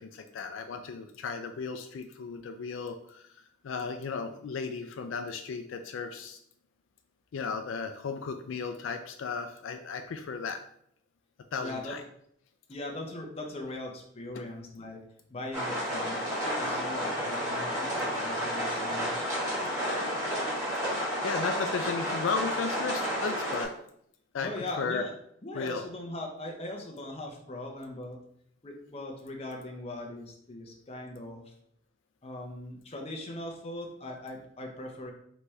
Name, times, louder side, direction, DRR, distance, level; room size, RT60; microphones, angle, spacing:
voice 1, 0.0-3.3 3.6-6.4 7.3-10.6 11.5-12.0 19.6-19.7 20.0-20.2 21.2-23.7 24.3-25.0 25.5-25.8, left 5 dB, 75° left, 6 dB, 0.4 m, -35 dB
voice 2, 11.6-12.0 12.7-15.0 15.3-19.2 24.4-25.1 25.4-28.2 28.6-31.5 32.2-35.1, left 2 dB, 30° left, 1 dB, 0.6 m, -40 dB
sound 1, 15.5-23.6, equal, 15° right, 1.6 m, -31 dB
4.1 x 3.4 x 3.1 m, 0.69 s
head